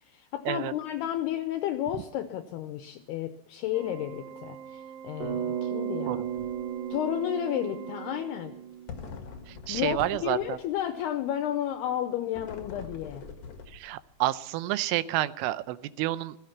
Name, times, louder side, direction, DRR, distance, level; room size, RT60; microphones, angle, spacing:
voice 1, 0.1-6.2 6.9-8.5 9.7-13.2, left 11 dB, 80° left, 8 dB, 2.4 m, -32 dB
Organ, 3.7-8.8, right 8 dB, 70° right, 2.8 m, -45 dB
Bass guitar, 5.2-9.3, right 9 dB, 50° right, 4.3 m, -35 dB
sound 1, 6.3-6.6 6.9-7.0 8.9-10.8 12.3-14.1, left 5 dB, 60° left, 1.5 m, -43 dB
voice 2, 9.5-10.6 13.7-16.4, right 15 dB, 90° right, 15 dB, 3.2 m, -30 dB
16.0 x 14.5 x 5.8 m, 0.85 s
omnidirectional pair, 5.5 m